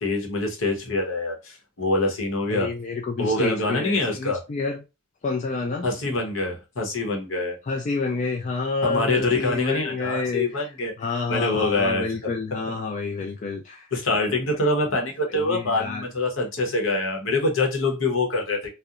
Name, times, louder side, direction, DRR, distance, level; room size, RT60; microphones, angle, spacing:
voice 1, 0.0-2.7 3.2-4.4 5.8-7.6 8.8-10.9 11.3-12.3 13.9-18.7, left 2 dB, 70° left, 0.8 m, -25 dB
voice 2, 2.5-4.8 5.2-5.9 7.6-10.6 11.0-13.9 14.2-14.3 15.3-16.1, left 4 dB, 35° left, 0.3 m, -29 dB
2.8 x 2.0 x 2.3 m
head